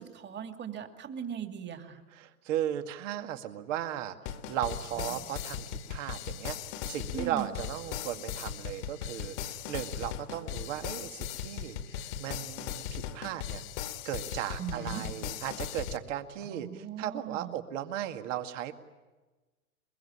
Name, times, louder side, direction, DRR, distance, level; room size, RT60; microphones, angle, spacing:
voice 1, 0.0-2.0 5.0-5.1 7.1-7.5 14.6-15.0 16.4-17.5, right 8 dB, 25° right, 7 dB, 2.6 m, -39 dB
voice 2, 2.1-13.6 14.0-18.7, right 11 dB, 55° right, 8 dB, 2.2 m, -36 dB
sound 1, 4.3-16.0, left 9 dB, 50° left, 1.8 m, -38 dB
23.5 x 22.5 x 9.9 m, 1.2 s
hypercardioid pair, 100°, 45 cm